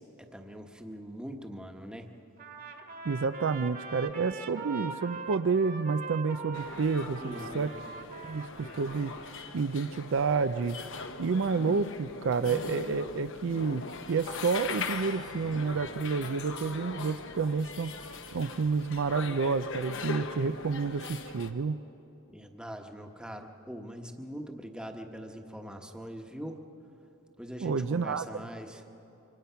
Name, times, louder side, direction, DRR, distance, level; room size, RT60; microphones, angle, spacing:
voice 1, 0.0-2.1 7.2-7.8 22.3-26.6 27.4-28.8, equal, 5° right, 4 dB, 1.2 m, -42 dB
Trumpet, 2.4-9.3, right 4 dB, 45° right, 1.7 m, -42 dB
voice 2, 3.0-7.7 8.2-10.8 11.2-17.9 18.3-21.8 27.6-28.4, right 4 dB, 60° right, 12 dB, 0.5 m, -30 dB
sound 1, 6.5-21.5, left 4 dB, 60° left, 1.1 m, -40 dB
26.0 x 24.5 x 5.7 m, 3.0 s
head